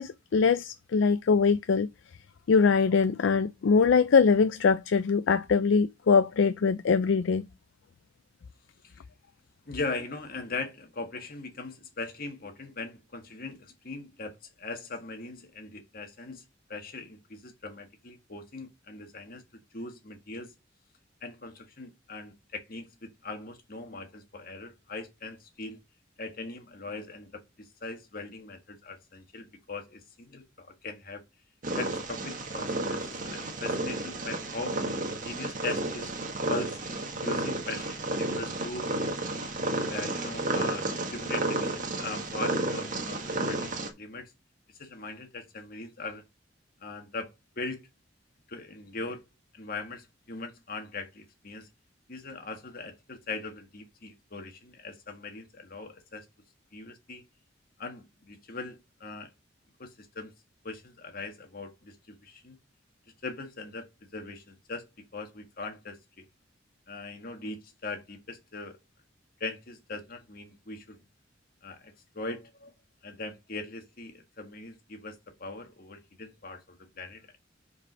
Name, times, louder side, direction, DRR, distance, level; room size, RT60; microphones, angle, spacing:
voice 1, 0.0-1.9 2.5-7.5, left 5 dB, 75° left, 0.4 m, -23 dB
voice 2, 9.6-16.4 16.7-19.4 19.7-20.5 21.2-25.8 26.2-31.2 31.7-34.8 35.1-36.1 36.5-36.8 37.2-38.9 39.9-44.3 44.8-46.2 46.8-47.8 48.5-49.2 49.5-51.7 52.1-56.2 56.7-57.2 57.8-59.3 59.8-60.3 60.6-62.6 63.2-63.9 64.1-64.8 65.1-66.2 66.9-68.8 69.4-71.0 71.6-72.7 73.0-77.4, left 3 dB, 50° left, 1.7 m, -40 dB
Purr, 31.6-43.9, right 2 dB, 45° right, 1.6 m, -32 dB
5.2 x 4.9 x 6.2 m
head